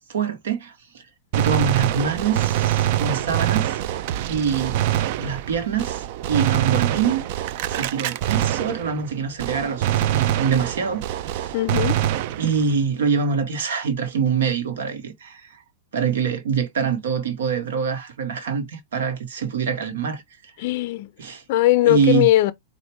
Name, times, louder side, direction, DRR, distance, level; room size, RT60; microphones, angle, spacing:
voice 1, 0.1-1.0 1.3-3.8 4.2-4.9 5.2-7.3 7.7-11.5 12.4-15.5 15.9-20.2 21.2-21.4 21.8-22.3, right 6 dB, 80° right, 1.2 m, -25 dB
Gunshot gunfire, 1.3-9.1 9.4-12.8, right 12 dB, 50° right, 0.4 m, -24 dB
voice 2, 11.5-12.0 20.6-21.1 21.5-22.5, left 16 dB, 55° left, 0.4 m, -19 dB
4.3 x 2.4 x 3.0 m
hypercardioid pair, 140°, 0 cm